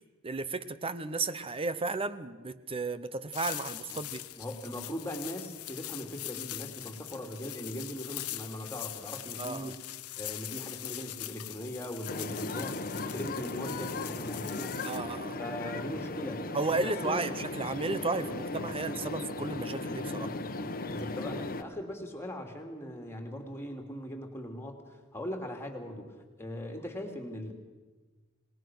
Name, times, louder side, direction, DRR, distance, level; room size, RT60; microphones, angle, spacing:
voice 1, 0.2-4.2 9.4-9.7 14.8-15.4 16.5-20.3, right 3 dB, 25° right, 14 dB, 0.8 m, -33 dB
sound 1, 3.3-15.0, left 15 dB, 85° left, 1.0 m, -42 dB
voice 2, 4.4-9.8 10.2-14.8 15.4-16.5 16.8-17.2 20.9-27.5, equal, 10° left, 3 dB, 2.8 m, -40 dB
sound 2, 12.1-21.6, left 2 dB, 40° left, 1.2 m, -37 dB
25.5 x 19.5 x 6.3 m, 1.3 s
head